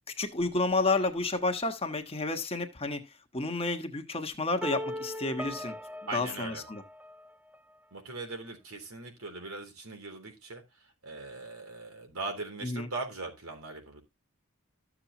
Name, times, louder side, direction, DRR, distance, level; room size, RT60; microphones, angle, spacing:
voice 1, 0.2-3.0 3.3-5.8 6.1-6.8 12.6-12.9, left 3 dB, 25° left, 1.3 m, -30 dB
sound 1, 4.6-7.6, equal, 5° right, 0.5 m, -40 dB
voice 2, 6.1-6.6 7.9-10.6 11.0-14.0, right 3 dB, 75° right, 3.5 m, -40 dB
13.5 x 7.3 x 2.9 m
head